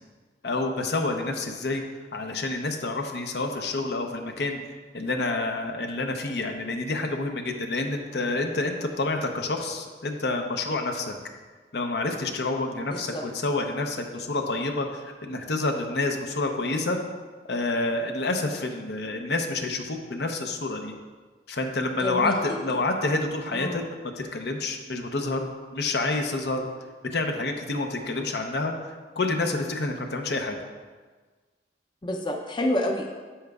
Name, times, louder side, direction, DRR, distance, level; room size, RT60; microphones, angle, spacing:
voice 1, 0.4-1.8 2.1-4.6 4.9-11.2 11.7-17.0 17.5-20.9 21.5-23.8 24.3-26.7 27.1-28.7 29.2-30.6, left 2 dB, 65° left, 4 dB, 0.7 m, -28 dB
voice 2, 12.9-13.2 22.0-22.4 23.5-23.8 32.0-33.1, left 1 dB, 25° left, 2 dB, 0.6 m, -28 dB
10.0 x 7.6 x 2.4 m, 1.4 s
head